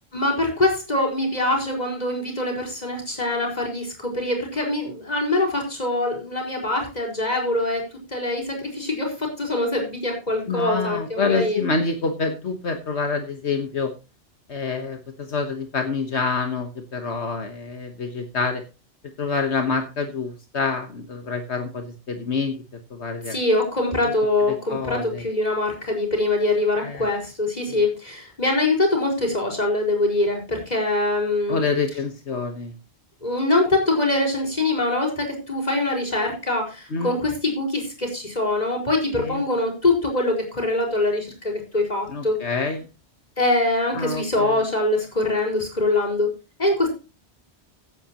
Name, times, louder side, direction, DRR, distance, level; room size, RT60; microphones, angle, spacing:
voice 1, 0.1-7.8 8.1-11.6 23.3-31.6 33.2-42.4 43.4-46.3 46.6-46.9, left 2 dB, 35° left, 1 dB, 5.3 m, -23 dB
voice 2, 10.5-13.9 14.5-18.6 19.2-22.5 22.9-23.4 24.0-24.1 24.5-25.2 26.7-27.1 27.7-27.8 31.5-32.7 36.9-37.1 39.2-39.4 42.1-42.9 43.9-44.6, left 4 dB, 80° left, 5 dB, 1.7 m, -27 dB
16.0 x 10.5 x 3.0 m, 0.30 s
omnidirectional pair, 1.1 m